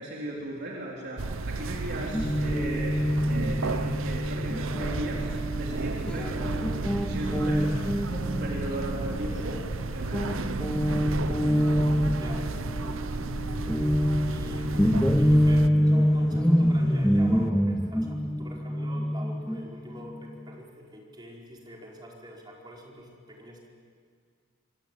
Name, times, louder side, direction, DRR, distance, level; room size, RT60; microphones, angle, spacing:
voice 1, 0.0-6.5 6.8-10.7, right 1 dB, 50° right, -3 dB, 3.8 m, -37 dB
sound 1, 1.2-15.7, right 3 dB, 65° right, 0.8 m, -33 dB
Guitar, 2.1-9.8 10.1-20.6, equal, 5° left, 0.7 m, -26 dB
sound 2, 6.6-17.5, left 3 dB, 70° left, 0.7 m, -44 dB
voice 2, 12.1-12.5 12.8-13.1 14.3-23.7, equal, 20° right, -2 dB, 4.9 m, -45 dB
26.0 x 25.0 x 9.2 m, 2.1 s
head